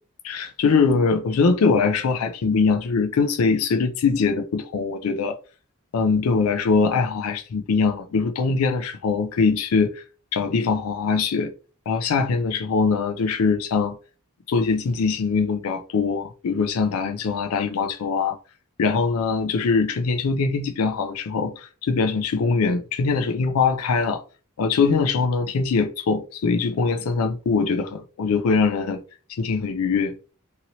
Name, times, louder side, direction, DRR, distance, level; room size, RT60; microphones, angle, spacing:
voice 1, 0.2-5.4 5.9-10.0 10.3-11.5 11.9-14.0 14.5-18.4 18.8-24.2 24.6-29.0 29.4-30.3, left 4 dB, 80° left, 0.4 m, -22 dB
2.9 x 2.8 x 2.7 m
head